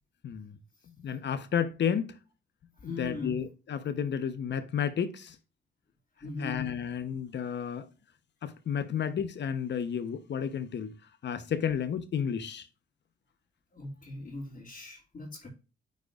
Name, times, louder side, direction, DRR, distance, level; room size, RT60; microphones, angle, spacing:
voice 1, 1.0-2.1 2.8-5.3 6.4-7.9 8.4-10.9 11.2-12.7, left 8 dB, 60° left, 1.0 m, -32 dB
voice 2, 2.8-3.4 6.2-6.6 13.7-15.5, left 2 dB, 35° left, 2.6 m, -40 dB
9.4 x 4.7 x 2.5 m
supercardioid pair, 55°, 21 cm